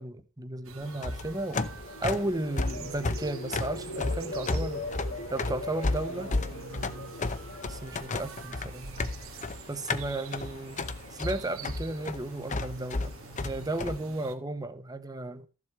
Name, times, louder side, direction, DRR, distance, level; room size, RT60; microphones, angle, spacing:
voice 1, 0.0-1.6 2.0-4.8 5.3-6.3 7.7-8.9 9.7-10.8 11.1-13.1 13.4-15.5, right 2 dB, 20° right, 1.0 m, -34 dB
sound 1, 0.6-14.3, right 5 dB, 75° right, 1.4 m, -46 dB
sound 2, 0.9-14.0, left 3 dB, 35° left, 0.8 m, -33 dB
sound 3, 1.5-8.7 9.1-9.4, left 2 dB, 85° left, 1.9 m, -41 dB
13.5 x 7.5 x 4.6 m
head